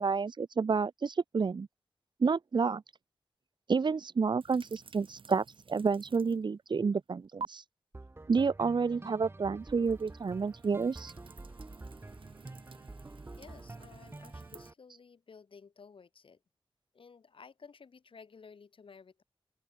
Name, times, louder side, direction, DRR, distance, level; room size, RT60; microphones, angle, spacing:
voice 1, 0.0-1.7 2.2-2.8 3.7-7.6 8.3-11.1, right 5 dB, 60° right, 1.0 m, -30 dB
sound 1, 4.4-6.5 6.8-7.5 9.6-14.7, right 5 dB, 75° right, 7.3 m, -50 dB
sound 2, 7.9-14.7, right 2 dB, 25° right, 4.4 m, -48 dB
voice 2, 13.4-16.4 16.9-19.2, left 5 dB, 75° left, 5.0 m, -54 dB
open air
wide cardioid pair, 125°, 9 cm